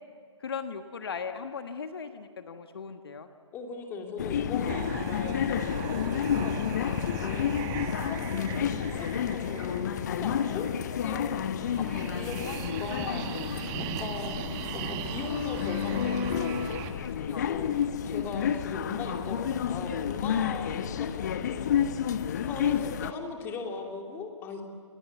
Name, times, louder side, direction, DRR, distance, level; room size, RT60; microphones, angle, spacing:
voice 1, 0.4-3.3 17.0-17.5, left 6 dB, 50° left, 7 dB, 1.4 m, -38 dB
voice 2, 3.5-10.7 11.0-13.3 13.8-14.4 14.7-16.6 17.2-17.8 18.1-21.8 22.3-24.6, left 4 dB, 15° left, 3 dB, 2.7 m, -39 dB
sound 1, 4.2-23.1, left 8 dB, 35° left, 1.0 m, -30 dB
sound 2, 4.7-16.9, right 9 dB, 20° right, 1.4 m, -39 dB
30.0 x 22.5 x 8.2 m, 2.3 s
figure-of-eight pair, 140°, 16 cm